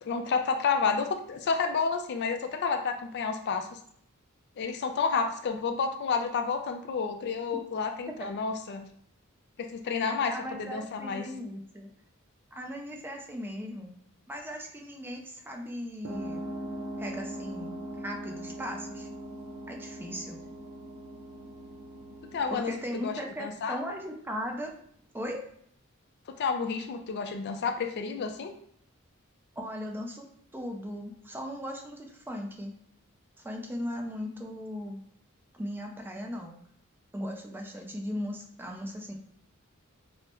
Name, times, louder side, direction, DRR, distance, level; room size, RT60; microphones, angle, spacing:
voice 1, 0.0-3.8 4.6-8.9 9.7-10.3 10.6-11.3 22.3-23.1 23.4-23.8 26.4-28.5, left 5 dB, 55° left, 6 dB, 0.4 m, -30 dB
voice 2, 9.9-11.9 12.5-13.9 14.3-16.5 17.0-19.1 19.7-20.4 22.5-24.7 25.1-25.4 29.6-30.3 30.5-32.7 33.4-35.0 35.5-36.6 37.1-39.1, equal, 10° right, 1 dB, 0.4 m, -38 dB
sound 1, 16.0-24.2, right 1 dB, 80° right, 0.7 m, -41 dB
4.6 x 2.0 x 2.9 m, 0.64 s
head